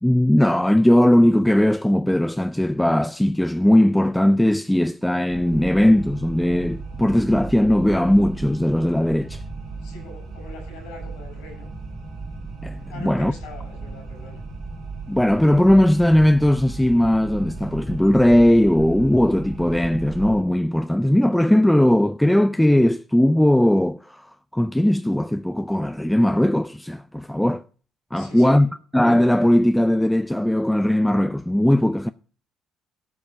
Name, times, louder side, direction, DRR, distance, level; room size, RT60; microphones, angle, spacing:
voice 1, 0.0-9.4 12.6-13.3 15.1-27.6 28.1-32.1, left 1 dB, 5° left, 0.5 m, -18 dB
sound 1, 5.3-20.4, right 3 dB, 70° right, 3.7 m, -35 dB
voice 2, 9.7-11.7 12.9-14.4 28.1-28.7, left 1 dB, 80° left, 6.3 m, -42 dB
13.0 x 5.4 x 5.9 m
hypercardioid pair, 55°, 0 cm